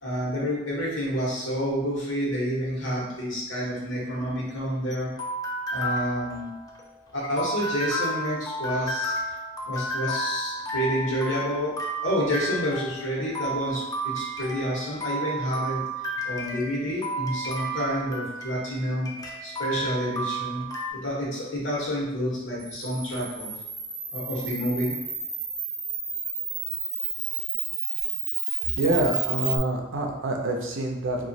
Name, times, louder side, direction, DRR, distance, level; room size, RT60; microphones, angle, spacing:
voice 1, 0.0-5.1 5.7-6.6 7.1-9.2 9.6-11.7 12.0-15.8 16.2-19.1 19.4-20.7 20.9-23.5 24.1-24.9, equal, 75° left, -4 dB, 1.0 m, -29 dB
sound 1, 4.2-20.9, right 1 dB, 20° left, 0.4 m, -32 dB
Camera, 22.6-29.6, right 5 dB, 40° right, 0.6 m, -31 dB
voice 2, 28.8-31.3, right 2 dB, 90° right, 2 dB, 0.5 m, -26 dB
2.9 x 2.4 x 2.6 m, 0.95 s
head